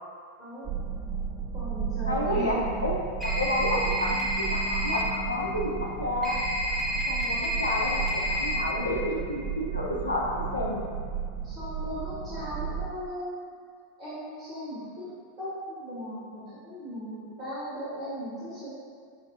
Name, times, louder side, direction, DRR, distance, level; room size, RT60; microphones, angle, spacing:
sound 1, 0.6-12.9, right 6 dB, 20° right, 0.4 m, -34 dB
voice 1, 1.5-2.7 11.4-13.5 14.0-15.0 15.4-18.7, equal, 40° right, -12 dB, 1.4 m, -37 dB
voice 2, 2.1-2.9 3.2-4.2 4.5-6.4 6.6-10.8, left 1 dB, 85° left, -3 dB, 0.5 m, -30 dB
sound 2, 3.2-5.0 6.2-8.6, equal, 10° left, 0.8 m, -30 dB
5.6 x 2.3 x 2.6 m, 2.1 s
figure-of-eight pair, 85°, 0 cm